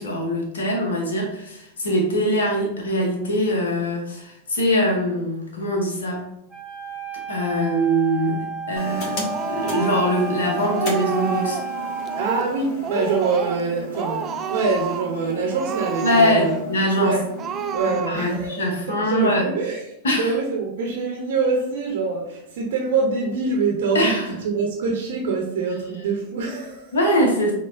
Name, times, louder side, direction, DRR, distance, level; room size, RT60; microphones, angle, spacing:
voice 1, 0.0-6.2 7.3-9.2 9.5-11.6 16.0-17.1 17.9-19.4 20.0-20.3 23.9-24.2 26.9-27.5, equal, 65° left, 0 dB, 0.8 m, -22 dB
Wind instrument woodwind instrument, 6.5-12.5, right 7 dB, 10° right, 0.9 m, -32 dB
sound 1, 8.8-17.9, left 2 dB, 45° left, 1.0 m, -35 dB
Speech, 9.3-10.3 10.6-11.7 12.1-12.6 12.8-13.7 13.9-15.1 15.5-16.6 17.0-17.1 17.4-18.4, right 7 dB, 30° right, 0.3 m, -30 dB
voice 2, 12.2-16.7 17.0-17.3 17.7-26.9, right 4 dB, 55° right, -1 dB, 0.8 m, -25 dB
5.9 x 2.3 x 2.5 m, 0.81 s
figure-of-eight pair, 90°, 0 cm